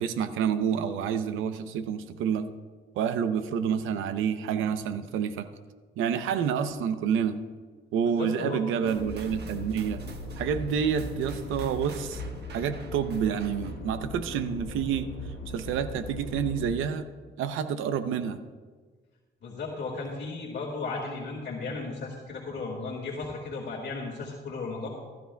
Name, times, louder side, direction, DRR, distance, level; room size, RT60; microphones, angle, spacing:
voice 1, 0.0-2.5 3.0-5.5 6.0-7.4 7.9-10.0 10.4-12.2 12.5-15.1 15.5-17.0 17.4-18.4, right 7 dB, 90° right, 10 dB, 0.7 m, -28 dB
voice 2, 8.0-9.0 19.4-24.9, left 3 dB, 60° left, -2 dB, 2.0 m, -35 dB
sound 1, 8.9-16.7, left 2 dB, 80° left, 1.5 m, -39 dB
sound 2, 8.9-13.9, right 4 dB, 55° right, 1.3 m, -48 dB
15.5 x 13.0 x 2.3 m, 1.4 s
cardioid pair, 90°, 20 cm